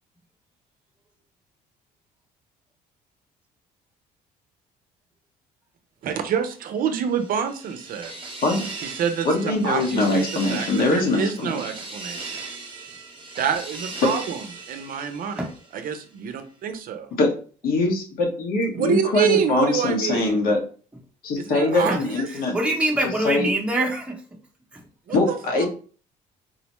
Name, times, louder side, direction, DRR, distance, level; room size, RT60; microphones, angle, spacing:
voice 1, 6.0-8.1 8.8-10.7 10.9-12.4 13.4-17.1 18.7-20.3 21.4-22.3 25.1-25.7, right 8 dB, 55° right, 8 dB, 0.6 m, -27 dB
sound 1, 6.8-15.9, right 3 dB, 30° right, 1.0 m, -38 dB
voice 2, 9.2-11.7 14.0-14.1 17.2-17.3 17.6-20.6 21.2-22.5 23.0-23.5 25.1-25.7, left 2 dB, 60° left, 1 dB, 1.1 m, -22 dB
voice 3, 22.5-24.2, right 1 dB, 5° right, 0 dB, 0.8 m, -24 dB
4.0 x 2.1 x 3.0 m, 0.40 s
cardioid pair, 110°, 17 cm